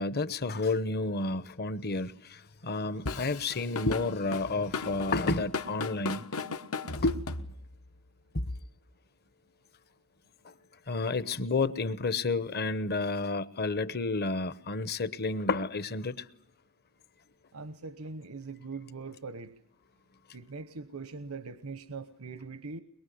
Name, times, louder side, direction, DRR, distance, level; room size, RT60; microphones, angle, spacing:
voice 1, 0.0-6.2 6.9-7.2 8.3-8.4 10.4-10.5 10.9-16.2, left 3 dB, 50° left, 1.0 m, -30 dB
Drum kit / Drum, 3.1-7.9, left 4 dB, 80° left, 1.4 m, -36 dB
voice 2, 17.5-19.5 20.3-22.8, right 4 dB, 80° right, 1.0 m, -41 dB
22.5 x 22.5 x 9.4 m
head